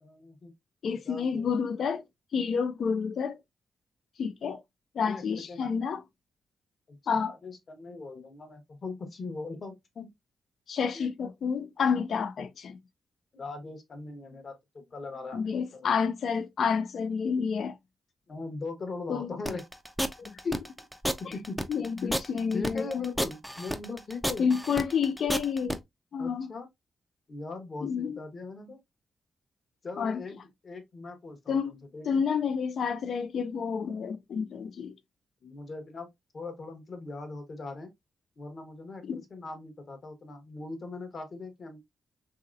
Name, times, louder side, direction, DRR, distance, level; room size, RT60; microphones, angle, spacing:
voice 1, 0.0-0.5 1.0-1.6 5.0-5.7 6.9-10.1 10.9-11.1 13.3-15.9 18.3-19.6 20.4-20.6 21.2-21.6 22.5-24.5 26.2-26.7 27.3-28.8 29.8-30.4 30.6-32.2 35.4-36.1 36.3-37.9 38.4-41.8, left 3 dB, 50° left, 1.0 m, -40 dB
voice 2, 0.8-2.0 2.3-3.4 4.2-4.6 4.9-6.0 7.1-7.3 10.7-12.8 15.3-17.8 19.1-19.3 20.2-20.5 21.3-21.4 21.7-22.9 24.4-25.8 26.1-26.5 27.8-28.2 30.0-30.2 31.5-31.7 32.1-35.0 39.0-39.2, left 6 dB, 70° left, 0.4 m, -29 dB
sound 1, 19.5-25.8, equal, ahead, 0.4 m, -31 dB
2.9 x 2.8 x 2.4 m
cardioid pair, 75°, 0 cm